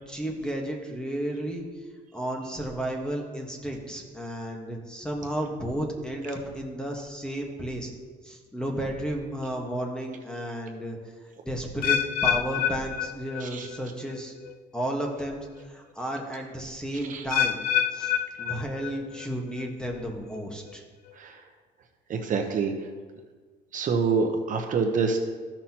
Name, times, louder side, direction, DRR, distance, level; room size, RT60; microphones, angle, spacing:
voice 1, 0.1-1.6 2.1-7.9 8.2-11.0 11.4-14.3 14.7-17.6 17.9-18.1 18.4-20.8, right 1 dB, 5° left, 1 dB, 1.4 m, -33 dB
sound 1, 11.8-13.8 14.1-14.5 15.2-15.3 17.3-19.3 19.6-20.0 20.7-20.8, left 9 dB, 55° left, 0.4 m, -28 dB
voice 2, 22.1-22.9 23.7-25.2, right 5 dB, 50° right, 4 dB, 0.9 m, -26 dB
14.0 x 6.0 x 2.9 m, 1.5 s
cardioid pair, 110°, 17 cm